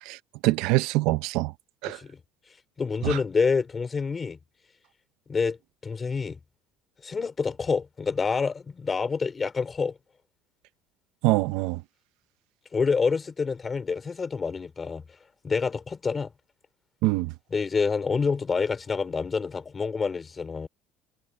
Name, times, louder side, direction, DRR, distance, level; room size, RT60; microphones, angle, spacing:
voice 1, 0.0-1.5 1.8-2.0 3.0-3.2 11.2-11.8 17.0-17.3, right 19 dB, 65° right, 0.6 m, -24 dB
voice 2, 1.8-2.2 2.8-4.4 5.3-5.6 5.8-6.4 7.0-10.0 12.7-15.0 15.4-16.3 17.5-20.7, left 5 dB, 15° left, 3.5 m, -27 dB
cardioid pair, 180°, 0 cm